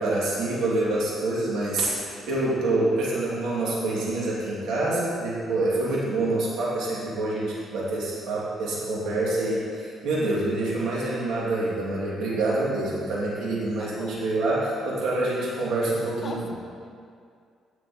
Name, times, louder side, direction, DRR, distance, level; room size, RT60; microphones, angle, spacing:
voice 1, 0.0-16.5, right 2 dB, 90° right, -6 dB, 2.5 m, -26 dB
voice 2, 13.8-14.2 16.2-16.5, left 3 dB, 40° left, 1 dB, 1.4 m, -39 dB
16.0 x 6.3 x 3.1 m, 2.2 s
cardioid pair, 90°, 0 cm